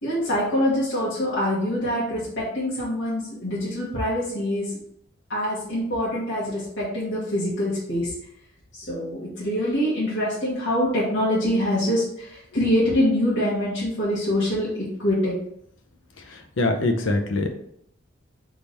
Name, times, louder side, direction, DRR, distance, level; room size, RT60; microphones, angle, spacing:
voice 1, 0.0-4.7 5.3-8.1 8.7-15.3, left 1 dB, 65° left, -9 dB, 1.6 m, -24 dB
voice 2, 16.3-17.5, left 2 dB, 80° left, 5 dB, 0.7 m, -24 dB
3.6 x 3.4 x 4.1 m, 0.72 s
head